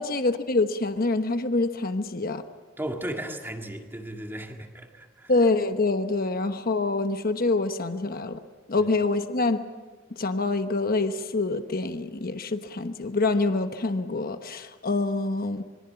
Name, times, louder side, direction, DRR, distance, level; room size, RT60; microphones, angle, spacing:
voice 1, 0.0-2.4 5.3-8.4 8.7-9.6 10.1-15.6, left 3 dB, 45° left, 8 dB, 1.1 m, -26 dB
voice 2, 2.8-5.3 8.8-8.9, right 1 dB, 10° right, 3 dB, 2.0 m, -35 dB
26.5 x 23.0 x 5.8 m, 1.3 s
head